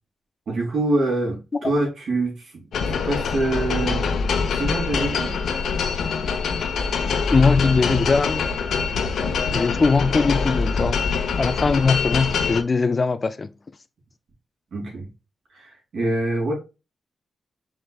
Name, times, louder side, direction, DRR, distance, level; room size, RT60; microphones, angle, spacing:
voice 1, 0.5-4.1 4.5-5.4 14.7-15.1 15.5-16.5, right 2 dB, 65° right, 2.9 m, -25 dB
sound 1, 2.7-12.6, left 5 dB, 80° left, 0.8 m, -24 dB
voice 2, 7.3-8.5 9.5-11.0 11.4-13.5, left 4 dB, 30° left, 0.3 m, -20 dB
5.0 x 4.6 x 2.3 m
wide cardioid pair, 170°, 0 cm